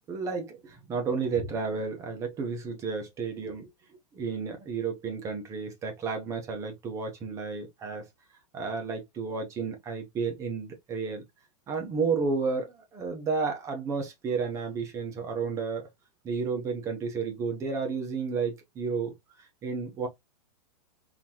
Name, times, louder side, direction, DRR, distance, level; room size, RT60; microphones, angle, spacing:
voice 1, 0.1-3.7 4.1-8.1 8.5-11.2 11.7-15.9 16.2-20.1, right 5 dB, 15° right, 0.9 m, -32 dB
3.9 x 2.9 x 2.8 m
supercardioid pair, 170°, 21 cm